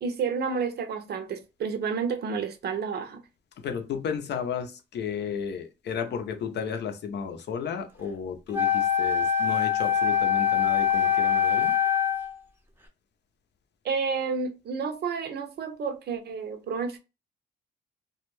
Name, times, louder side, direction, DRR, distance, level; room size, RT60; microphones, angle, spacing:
voice 1, 0.0-3.2 13.8-17.0, right 5 dB, 55° right, 0.6 m, -30 dB
voice 2, 3.6-11.7, left 6 dB, 60° left, 0.6 m, -33 dB
Wind instrument woodwind instrument, 8.5-12.3, left 8 dB, 10° right, 0.6 m, -23 dB
2.3 x 2.2 x 3.0 m
cardioid pair, 90°, 20 cm